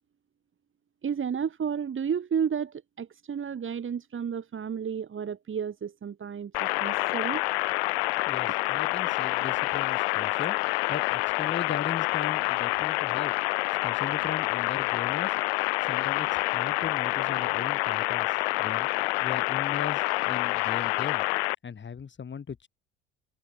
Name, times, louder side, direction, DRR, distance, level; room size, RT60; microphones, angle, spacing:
voice 1, 1.0-7.4, right 7 dB, 35° right, 5.9 m, -32 dB
sound 1, 6.5-21.5, left 25 dB, 65° left, 1.0 m, -27 dB
voice 2, 8.3-10.6 10.9-13.3 13.8-15.4 15.9-18.9 19.2-21.2 21.6-22.7, left 6 dB, 35° left, 6.6 m, -38 dB
figure-of-eight pair, 55°, 34 cm